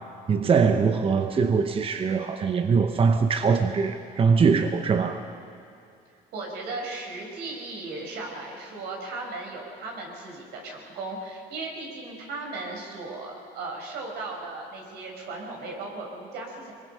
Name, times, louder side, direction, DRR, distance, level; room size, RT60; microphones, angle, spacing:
voice 1, 0.3-5.2, right 5 dB, 35° right, 7 dB, 0.9 m, -22 dB
voice 2, 6.3-16.7, right 3 dB, 80° right, 0 dB, 5.1 m, -36 dB
23.5 x 21.0 x 5.6 m, 2.6 s
cardioid pair, 110°, 17 cm